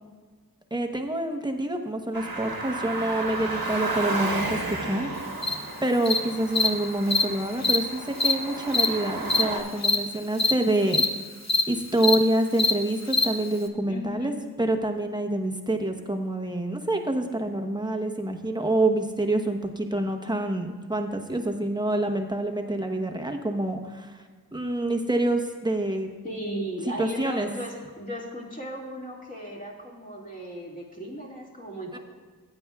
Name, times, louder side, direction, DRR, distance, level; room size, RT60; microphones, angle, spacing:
voice 1, 0.7-5.1 5.8-11.0 11.7-14.3 14.6-24.2 24.5-26.1 27.0-27.5 31.9-32.0, right 1 dB, 10° right, 4 dB, 0.9 m, -27 dB
Car, 2.1-9.6, right 3 dB, 70° right, 1.3 m, -33 dB
Cricket, 5.4-5.5 6.1-6.2 6.6-6.7 7.1-7.2 7.6-7.8 8.2-8.3 8.7-8.9 9.3-9.4 9.8-10.0 10.4-10.5 10.9-11.1 11.5-11.6 12.0-12.2 12.6-12.7 13.1-13.2, left 3 dB, 45° left, 0.7 m, -21 dB
voice 2, 13.9-14.4 26.2-32.0, equal, 20° left, -3 dB, 2.1 m, -36 dB
15.5 x 8.9 x 2.4 m, 1.5 s
wide cardioid pair, 40°, 37 cm